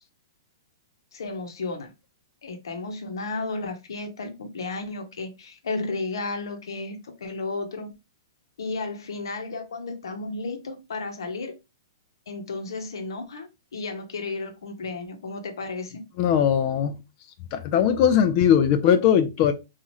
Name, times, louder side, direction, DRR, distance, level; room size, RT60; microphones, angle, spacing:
voice 1, 1.1-1.9 2.4-7.9 8.6-11.5 12.3-16.0, left 3 dB, 80° left, 0.8 m, -33 dB
voice 2, 16.2-17.0 17.5-19.5, left 9 dB, 35° left, 0.3 m, -20 dB
2.9 x 2.4 x 2.6 m
hypercardioid pair, 145°, 2 cm